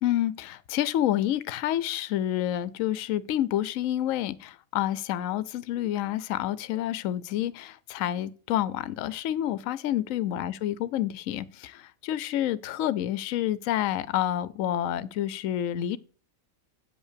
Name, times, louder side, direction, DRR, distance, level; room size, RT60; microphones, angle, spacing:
voice 1, 0.0-16.0, left 12 dB, 75° left, 1.0 m, -28 dB
8.2 x 5.4 x 6.6 m
omnidirectional pair, 1.4 m